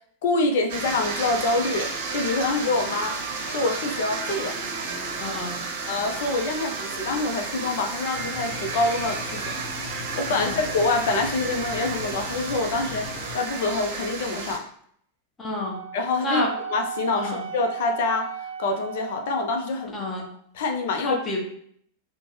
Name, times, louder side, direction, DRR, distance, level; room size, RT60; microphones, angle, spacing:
voice 1, 0.2-3.2 3.4-4.6 5.9-9.6 10.2-14.6 15.9-16.4 16.7-20.0 20.5-21.2, left 3 dB, 55° left, 4 dB, 0.6 m, -26 dB
sound 1, 0.7-14.6, right 4 dB, 50° right, 0.8 m, -32 dB
voice 2, 5.2-5.6 10.3-10.6 15.4-15.8 16.2-16.5 17.2-17.5 19.9-20.2 21.0-21.4, left 1 dB, 20° left, -1 dB, 1.2 m, -29 dB
sound 2, 8.1-13.4, left 3 dB, 70° left, 1.1 m, -39 dB
Wind instrument woodwind instrument, 15.7-19.9, right 9 dB, 65° right, 0.4 m, -36 dB
5.0 x 2.2 x 3.2 m, 0.66 s
figure-of-eight pair, 90°, 0 cm